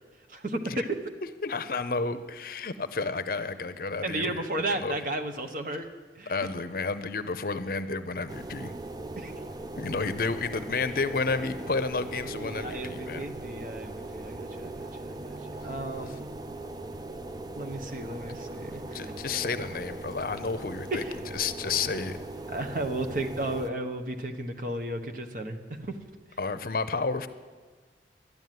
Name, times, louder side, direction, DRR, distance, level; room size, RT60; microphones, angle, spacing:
voice 1, 0.3-1.0 4.0-5.9 6.1-6.3 9.2-9.3 12.3-15.4 15.6-16.3 17.6-19.1 20.9-21.1 22.5-25.6 25.8-26.0, right 1 dB, 50° right, 5 dB, 1.1 m, -34 dB
voice 2, 1.2-5.0 6.3-8.7 9.8-13.3 18.9-21.0 21.3-22.2 26.4-27.3, left 4 dB, 55° left, 12 dB, 0.6 m, -31 dB
sound 1, 8.3-23.7, right 2 dB, 25° right, 0.5 m, -39 dB
12.0 x 9.4 x 9.3 m, 1.4 s
head